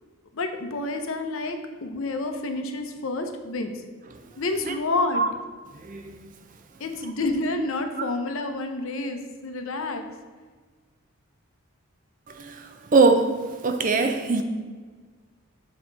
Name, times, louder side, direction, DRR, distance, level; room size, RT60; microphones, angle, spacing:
voice 1, 0.3-3.8 4.4-5.2 6.8-10.0, left 2 dB, 65° left, 6 dB, 0.6 m, -29 dB
voice 2, 5.7-6.2 12.3-13.3 13.6-14.4, right 4 dB, 35° right, 6 dB, 0.5 m, -22 dB
7.1 x 3.0 x 5.2 m, 1.5 s
head